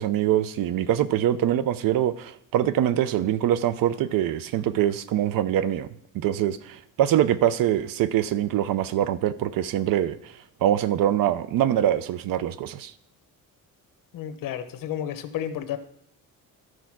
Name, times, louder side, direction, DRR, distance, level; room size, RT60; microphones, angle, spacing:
voice 1, 0.0-5.9 6.1-10.2 10.6-12.9, right 11 dB, 80° right, 0.7 m, -24 dB
voice 2, 14.1-15.8, left 10 dB, 75° left, 1.0 m, -31 dB
12.5 x 4.7 x 6.0 m
cardioid pair, 140°, 33 cm